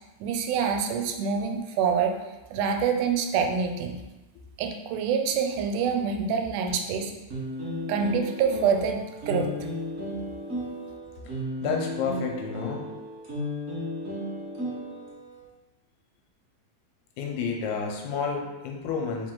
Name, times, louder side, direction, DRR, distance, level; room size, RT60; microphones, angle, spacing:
voice 1, 0.2-2.1 2.5-4.0 4.6-7.1 7.9-9.5, right 6 dB, 85° right, 4 dB, 2.0 m, -26 dB
sound 1, 7.3-15.4, left 1 dB, 65° right, 0.7 m, -34 dB
voice 2, 11.2-12.9 17.2-19.3, left 5 dB, 80° left, 1 dB, 2.0 m, -31 dB
4.6 x 2.5 x 3.7 m, 1.0 s
omnidirectional pair, 3.5 m